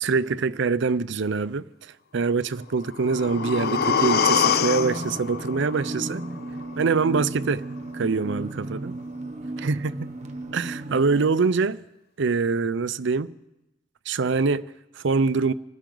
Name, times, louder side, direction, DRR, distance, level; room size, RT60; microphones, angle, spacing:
voice 1, 0.0-6.3 6.8-7.6 7.9-9.0 9.6-10.1 10.5-11.8 12.2-13.3 14.1-15.5, right 4 dB, 70° right, 0.6 m, -24 dB
sound 1, 2.8-6.8 7.1-7.2, left 7 dB, 55° left, 0.5 m, -25 dB
sound 2, 3.0-11.3, right 2 dB, 40° right, 1.1 m, -35 dB
26.5 x 13.0 x 3.9 m
head